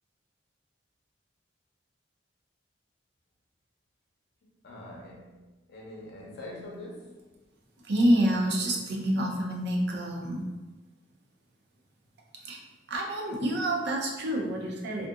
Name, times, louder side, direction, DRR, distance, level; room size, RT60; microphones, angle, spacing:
voice 1, 4.6-5.4 5.7-7.2, left 1 dB, 65° left, -2 dB, 0.6 m, -43 dB
voice 2, 7.8-10.4 12.4-12.6 12.9-15.1, right 1 dB, 65° right, -1 dB, 0.5 m, -27 dB
2.7 x 2.4 x 2.4 m, 1.2 s
head